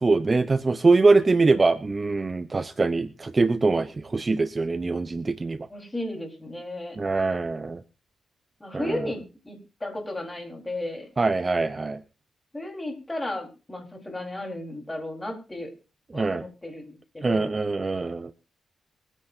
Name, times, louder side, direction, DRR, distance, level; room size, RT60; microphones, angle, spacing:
voice 1, 0.0-5.6 7.0-7.8 8.7-9.0 11.2-12.0 16.1-16.4 17.2-18.3, right 3 dB, 30° right, 12 dB, 0.6 m, -23 dB
voice 2, 5.7-7.0 8.6-11.1 12.5-15.7 16.1-17.5, left 1 dB, 15° left, 2 dB, 4.3 m, -34 dB
26.5 x 9.9 x 2.7 m, 0.33 s
cardioid pair, 105°, 0 cm